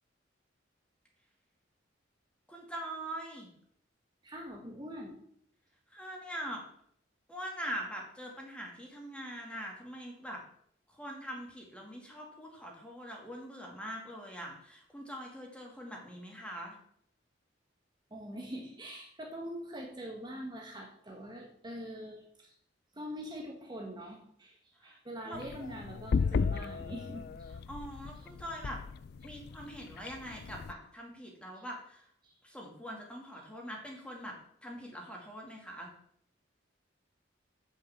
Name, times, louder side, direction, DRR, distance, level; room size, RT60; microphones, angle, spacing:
voice 1, 2.5-3.5 5.9-6.6 7.3-10.4 10.9-16.8 24.8-25.0 25.2-25.4 27.7-28.8 29.2-32.1 32.4-34.3 34.6-35.9, equal, 5° left, 0 dB, 2.3 m, -43 dB
voice 2, 4.2-5.2 18.1-22.5 22.9-27.5 28.2-28.3 31.5-31.6 32.2-32.4, equal, 25° right, 0 dB, 1.4 m, -44 dB
sound 1, 25.3-30.7, left 5 dB, 55° left, 0.4 m, -35 dB
9.4 x 5.6 x 7.1 m, 0.68 s
head